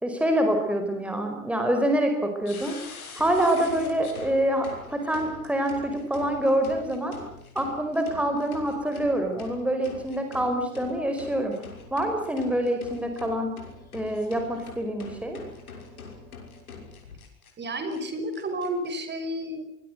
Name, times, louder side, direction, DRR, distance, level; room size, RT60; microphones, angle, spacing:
voice 1, 0.0-2.8 3.1-7.1 7.5-11.5 11.9-13.5 13.9-15.4, right 1 dB, 5° right, 4 dB, 5.0 m, -26 dB
sound 1, 2.4-17.5 17.9-18.0 18.3-18.9, left 4 dB, 80° left, 6.5 m, -44 dB
voice 2, 17.6-19.6, right 1 dB, 25° right, 8 dB, 5.8 m, -31 dB
24.5 x 21.5 x 8.1 m, 0.76 s
figure-of-eight pair, 85°, 42 cm